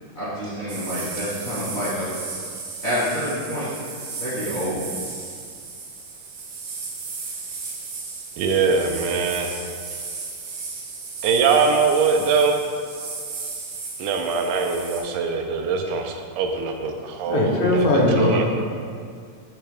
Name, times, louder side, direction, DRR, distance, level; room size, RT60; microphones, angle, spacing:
voice 1, 0.1-2.1 2.8-3.7 4.2-4.8, equal, 50° left, -12 dB, 0.8 m, -27 dB
sound 1, 0.7-15.0, right 4 dB, 70° right, 1.5 m, -35 dB
voice 2, 8.4-9.5 11.2-12.5 14.0-17.9 18.2-18.4, right 5 dB, 85° right, 3 dB, 2.0 m, -22 dB
voice 3, 17.3-18.6, left 2 dB, 90° left, -1 dB, 2.3 m, -19 dB
8.3 x 3.4 x 3.3 m, 2.1 s
omnidirectional pair, 3.6 m